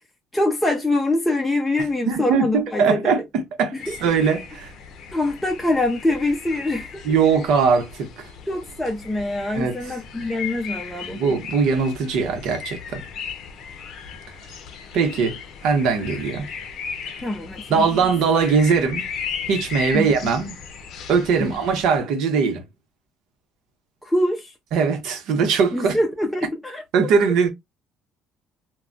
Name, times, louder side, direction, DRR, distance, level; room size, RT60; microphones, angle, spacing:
voice 1, 0.3-3.1 3.7-4.1 5.1-7.0 8.5-11.2 17.2-18.0 19.9-20.1 21.4-21.6 24.0-24.5 25.7-27.1, left 1 dB, 10° left, 0.5 m, -24 dB
voice 2, 2.1-4.7 7.0-8.3 9.5-9.7 11.1-13.0 14.9-16.5 17.7-19.0 19.5-20.6 21.1-22.6 24.7-26.0 26.9-27.5, right 5 dB, 75° right, 0.9 m, -21 dB
sound 1, 3.8-22.0, left 6 dB, 65° left, 0.6 m, -36 dB
2.2 x 2.2 x 3.7 m
supercardioid pair, 90°, 0 cm